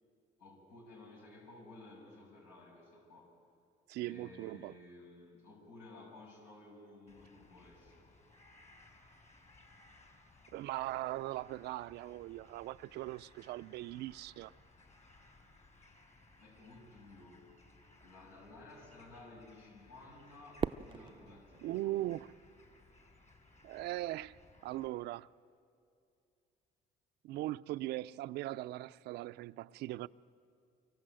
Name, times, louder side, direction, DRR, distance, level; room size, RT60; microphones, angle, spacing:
voice 1, 0.4-3.3 4.0-8.1 16.4-17.4 18.0-22.0, left 2 dB, 85° left, 7.3 m, -55 dB
voice 2, 3.9-4.7 10.5-14.5 21.6-22.3 23.6-24.4 24.6-25.3 27.2-30.1, right 16 dB, 80° right, 0.5 m, -39 dB
sound 1, 7.1-24.9, left 2 dB, 40° left, 4.9 m, -62 dB
Fireworks, 20.6-22.9, right 7 dB, 30° right, 0.5 m, -41 dB
25.0 x 24.0 x 7.7 m
cardioid pair, 110°, 17 cm